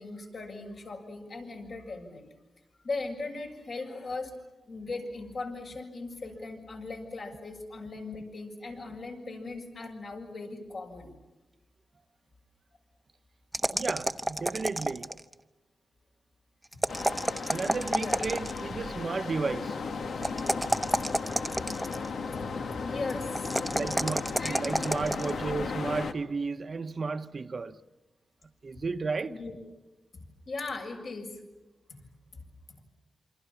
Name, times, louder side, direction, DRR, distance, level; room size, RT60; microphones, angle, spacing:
voice 1, 0.0-2.3 2.8-4.3 4.6-11.1 17.9-18.2 22.8-23.5 24.4-24.7 29.3-29.6 30.5-31.3, left 3 dB, 65° left, 6.9 m, -38 dB
sound 1, 13.5-15.3 16.7-18.6 20.2-22.1 23.4-25.3, right 1 dB, 10° right, 1.0 m, -30 dB
voice 2, 13.7-15.1 17.5-19.8 23.7-27.8 28.6-29.4, right 4 dB, 50° right, 1.0 m, -33 dB
sound 2, 16.9-26.1, left 4 dB, 80° left, 1.7 m, -35 dB
28.0 x 25.5 x 7.2 m
wide cardioid pair, 95°, 0 cm